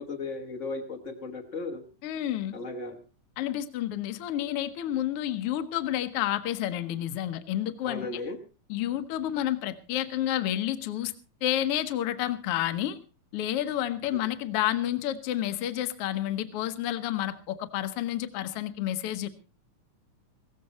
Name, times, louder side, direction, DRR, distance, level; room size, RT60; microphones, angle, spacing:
voice 1, 0.0-1.8 2.5-3.0 7.8-8.4, left 3 dB, 45° left, 2 dB, 1.0 m, -35 dB
voice 2, 2.0-2.6 3.4-8.0 8.7-11.1 11.4-13.0 13.3-19.3, left 12 dB, 60° left, 10 dB, 1.7 m, -30 dB
16.5 x 15.5 x 4.1 m, 0.32 s
omnidirectional pair, 3.6 m